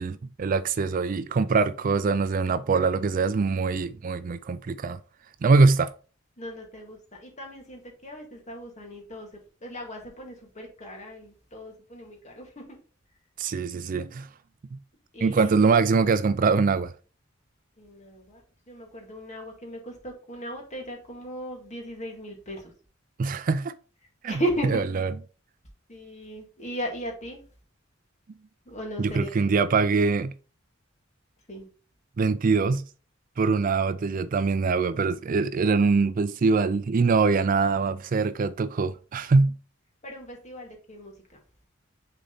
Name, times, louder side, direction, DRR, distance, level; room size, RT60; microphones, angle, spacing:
voice 1, 0.0-5.0 5.4-5.9 13.4-14.3 14.7-14.8 15.2-16.9 23.2-23.7 24.2-24.4 25.0-25.1 29.0-30.3 32.2-32.8 33.4-39.5, right 4 dB, 45° right, 0.4 m, -23 dB
voice 2, 6.4-9.3 9.6-12.8 15.1-15.5 17.8-22.7 24.3-24.9 25.9-27.5 28.7-29.3 31.5-31.7 40.0-41.4, equal, 35° left, 2.0 m, -36 dB
6.6 x 4.1 x 4.0 m
head